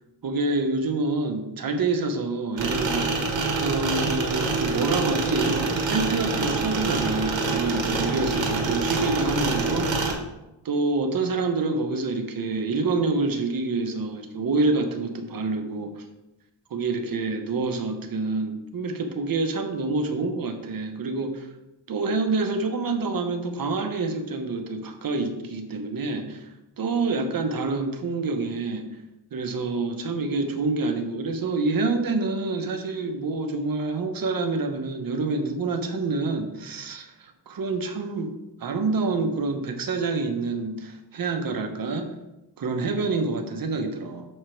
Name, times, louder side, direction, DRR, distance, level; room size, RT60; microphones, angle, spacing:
voice 1, 0.2-3.1 3.6-10.1 10.6-16.0 16.7-21.5 21.9-26.5 26.8-28.8 29.3-38.3 38.6-42.1 42.6-44.3, right 3 dB, 50° right, 6 dB, 0.9 m, -27 dB
sound 1, 2.6-10.1, right 3 dB, 85° right, 1.2 m, -26 dB
6.5 x 4.9 x 4.5 m, 0.96 s
wide cardioid pair, 155°, 44 cm